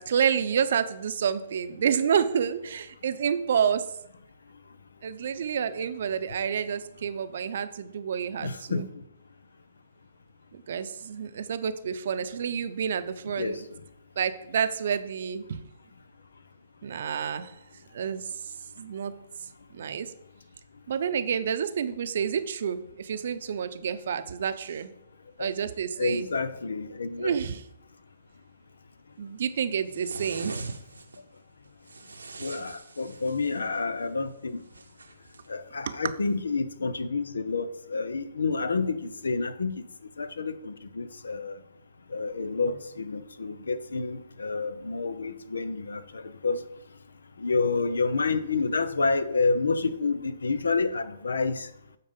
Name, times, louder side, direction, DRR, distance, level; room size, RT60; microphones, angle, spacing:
voice 1, 0.0-3.9 5.0-8.9 10.5-13.6 14.2-15.6 16.8-17.5 17.9-18.3 18.8-19.1 19.7-20.1 20.9-24.9 25.4-26.3 27.2-27.6 29.2-30.5 35.9-36.0, right 7 dB, 65° right, 12 dB, 0.6 m, -29 dB
voice 2, 8.4-8.8 13.4-13.6 25.4-25.5 26.0-27.3 32.4-34.6 35.5-39.7 40.2-41.5 42.1-46.6 47.4-51.7, left 4 dB, 80° left, 13 dB, 0.7 m, -29 dB
sound 1, 29.9-31.2 31.9-33.7 34.7-35.4, right 3 dB, 90° right, 0.8 m, -41 dB
8.9 x 4.1 x 5.2 m, 0.79 s
hypercardioid pair, 135°, 0 cm